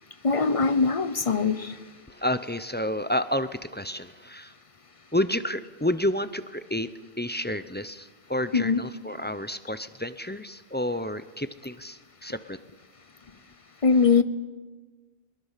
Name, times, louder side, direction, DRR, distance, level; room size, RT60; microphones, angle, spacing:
voice 1, 0.2-1.7 8.5-8.8 13.8-14.2, left 5 dB, 35° left, 12 dB, 0.9 m, -21 dB
voice 2, 2.1-4.5 5.1-6.9 7.2-12.6, left 1 dB, 15° left, 12 dB, 0.5 m, -30 dB
22.5 x 21.5 x 5.8 m, 1.3 s
omnidirectional pair, 1.1 m